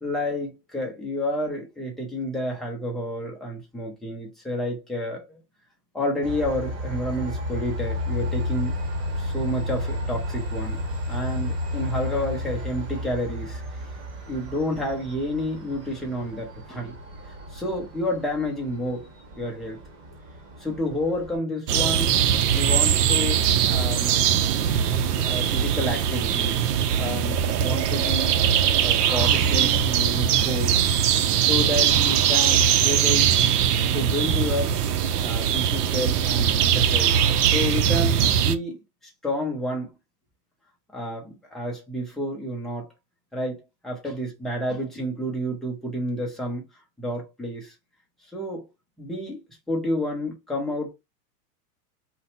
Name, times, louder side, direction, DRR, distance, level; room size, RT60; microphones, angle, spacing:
voice 1, 0.0-5.4 5.9-8.8 9.2-10.8 11.1-13.6 14.3-16.9 17.5-19.1 19.4-19.8 20.6-22.2 22.5-24.2 24.7-24.9 25.2-28.3 28.8-31.0 31.4-33.4 33.9-34.8 35.2-37.2 37.4-38.8 39.2-39.9 40.9-42.9 43.3-46.6 47.0-47.7 48.3-48.7 49.0-49.4 49.7-50.9, left 1 dB, ahead, 0.4 m, -30 dB
Train, 6.2-21.4, left 1 dB, 35° right, 1.5 m, -32 dB
sound 1, 21.7-38.6, right 9 dB, 75° right, 0.6 m, -21 dB
2.7 x 2.2 x 4.0 m
hypercardioid pair, 130°, 48 cm